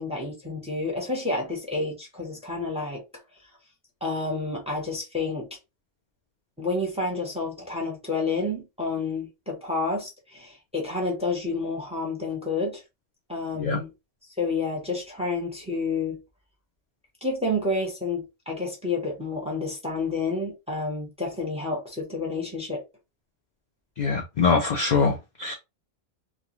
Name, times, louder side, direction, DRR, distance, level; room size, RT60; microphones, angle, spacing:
voice 1, 0.0-3.0 4.0-5.5 6.6-12.8 13.3-13.9 14.4-16.2 17.2-22.8, left 3 dB, 5° right, 0.7 m, -29 dB
voice 2, 24.0-25.5, left 4 dB, 60° left, 0.5 m, -23 dB
2.3 x 2.2 x 2.9 m
omnidirectional pair, 1.3 m